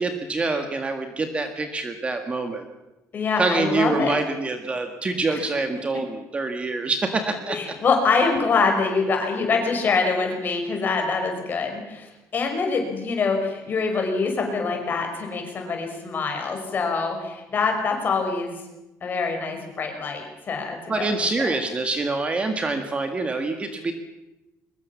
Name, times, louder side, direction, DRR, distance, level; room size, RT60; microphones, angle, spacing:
voice 1, 0.0-2.7 3.4-7.6 20.9-23.9, right 3 dB, 20° right, 6 dB, 1.7 m, -26 dB
voice 2, 3.1-4.2 5.3-5.4 7.5-18.6 19.0-21.1, left 4 dB, 30° left, 3 dB, 5.6 m, -25 dB
23.0 x 21.5 x 7.3 m, 0.98 s
cardioid pair, 180°, 6 cm